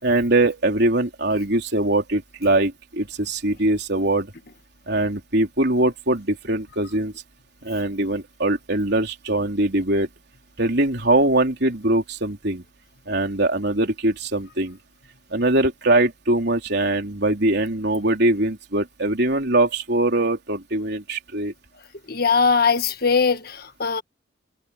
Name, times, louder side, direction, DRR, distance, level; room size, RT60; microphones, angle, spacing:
voice 1, 0.0-4.3 4.9-7.1 7.6-10.1 10.6-12.6 13.1-14.8 15.3-21.5, right 2 dB, 60° right, 3.8 m, -22 dB
voice 2, 22.1-24.0, left 5 dB, 55° left, 1.6 m, -20 dB
head